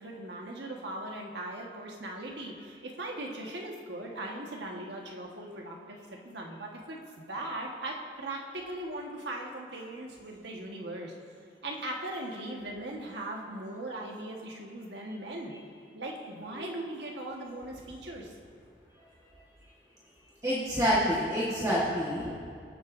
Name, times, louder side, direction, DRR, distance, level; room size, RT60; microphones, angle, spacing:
voice 1, 0.0-11.1 11.6-15.5 15.9-18.3, right 1 dB, 70° right, 0 dB, 1.4 m, -39 dB
voice 2, 20.4-22.3, equal, 20° right, -7 dB, 1.3 m, -27 dB
23.0 x 7.7 x 2.6 m, 2.3 s
head